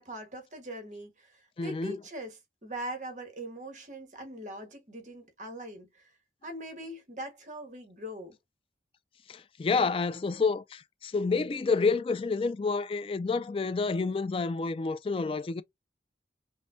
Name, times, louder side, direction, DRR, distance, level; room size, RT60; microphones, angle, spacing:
voice 1, 0.0-6.1 6.4-8.4, right 1 dB, 45° right, 1.3 m, -41 dB
voice 2, 1.6-2.0 9.3-15.6, left 4 dB, 30° left, 0.3 m, -29 dB
5.3 x 2.1 x 2.6 m
head